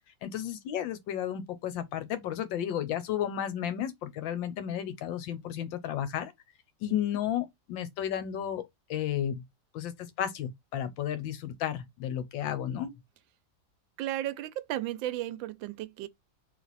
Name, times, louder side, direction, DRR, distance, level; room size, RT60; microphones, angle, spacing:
voice 1, 0.2-6.3 6.8-9.4 9.7-12.9, left 10 dB, 80° left, 1.4 m, -33 dB
voice 2, 14.0-16.1, right 13 dB, 80° right, 1.3 m, -34 dB
3.3 x 3.1 x 4.0 m
omnidirectional pair, 2.1 m